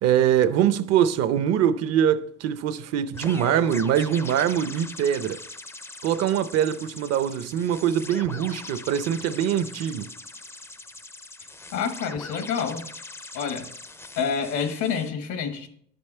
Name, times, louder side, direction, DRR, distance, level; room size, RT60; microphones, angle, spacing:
voice 1, 0.0-5.4 6.0-10.1, right 9 dB, 60° right, 0.6 m, -23 dB
sound 1, 3.1-15.1, left 2 dB, 10° left, 0.4 m, -41 dB
voice 2, 11.7-12.8 13.3-13.7 14.2-15.7, left 6 dB, 85° left, 1.3 m, -28 dB
10.5 x 5.3 x 4.3 m
cardioid pair, 125°, 29 cm